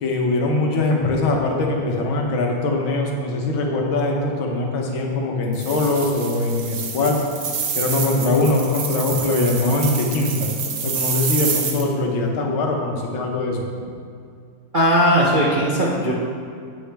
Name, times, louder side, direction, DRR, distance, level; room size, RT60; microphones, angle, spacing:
voice 1, 0.0-7.2 7.7-10.5 10.8-13.7, left 2 dB, 80° left, 0 dB, 1.9 m, -22 dB
sound 1, 5.5-11.8, right 6 dB, 70° right, 1.5 m, -28 dB
voice 2, 14.7-16.1, equal, 45° right, -6 dB, 0.6 m, -18 dB
8.7 x 8.4 x 3.4 m, 2.3 s
omnidirectional pair, 2.2 m